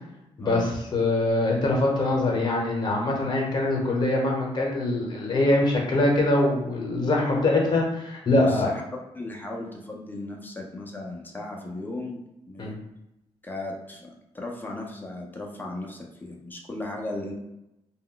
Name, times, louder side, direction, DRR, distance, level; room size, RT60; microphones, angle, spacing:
voice 1, 0.4-8.7 12.6-12.7, left 2 dB, 40° left, -1 dB, 0.8 m, -23 dB
voice 2, 8.3-8.8 9.1-12.7 13.4-17.3, left 2 dB, 15° left, 0 dB, 0.5 m, -36 dB
2.2 x 2.1 x 3.7 m, 0.87 s
cardioid pair, 110°, 12 cm